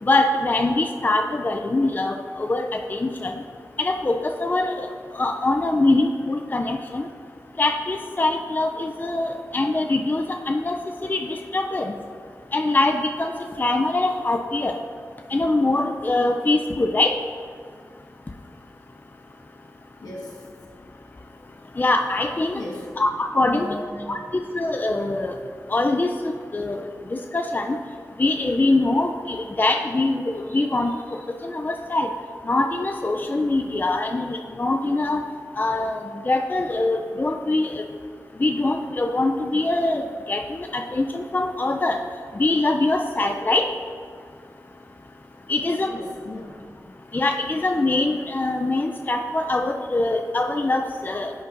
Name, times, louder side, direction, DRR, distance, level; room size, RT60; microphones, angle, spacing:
voice 1, 0.0-3.4 3.8-4.9 5.1-7.1 7.6-11.9 12.5-13.3 13.6-14.8 15.3-17.1 21.8-22.6 23.0-23.7 24.1-25.4 25.7-26.8 27.1-27.8 28.2-30.9 31.4-32.1 32.4-35.2 35.6-36.0 36.3-37.8 38.4-42.0 42.4-43.7 45.5-45.9 47.1-51.3, left 2 dB, 30° left, 4 dB, 0.4 m, -23 dB
voice 2, 20.0-20.4 22.5-22.9 23.4-24.2 45.5-46.6, left 1 dB, 85° left, -4 dB, 1.6 m, -36 dB
10.5 x 5.6 x 2.6 m, 2.1 s
cardioid pair, 50°, 6 cm